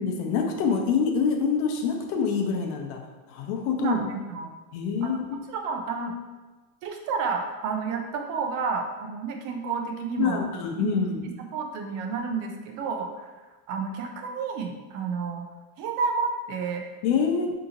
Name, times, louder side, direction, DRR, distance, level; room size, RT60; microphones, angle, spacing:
voice 1, 0.0-3.0 3.3-4.0 4.7-5.4 10.2-11.2 17.0-17.5, left 6 dB, 75° left, 3 dB, 0.7 m, -26 dB
voice 2, 3.8-4.5 5.0-5.2 5.5-6.1 6.8-10.4 10.8-11.0 11.2-15.4 15.8-16.8, right 5 dB, 45° right, 3 dB, 0.4 m, -30 dB
2.8 x 2.8 x 3.6 m, 1.2 s
supercardioid pair, 130°, 46 cm